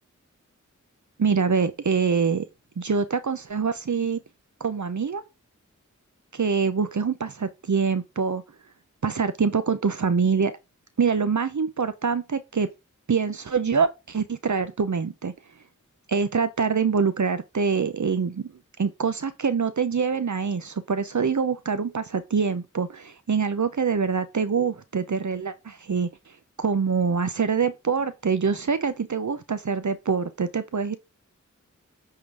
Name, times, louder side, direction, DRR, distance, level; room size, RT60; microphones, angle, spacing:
voice 1, 1.2-2.4 2.8-4.2 4.6-5.2 6.3-8.4 9.0-10.5 11.0-12.7 13.1-15.3 16.1-18.5 18.8-26.1 26.6-31.0, right 5 dB, 65° right, 0.7 m, -25 dB
8.8 x 3.8 x 4.7 m
wide cardioid pair, 55°, 31 cm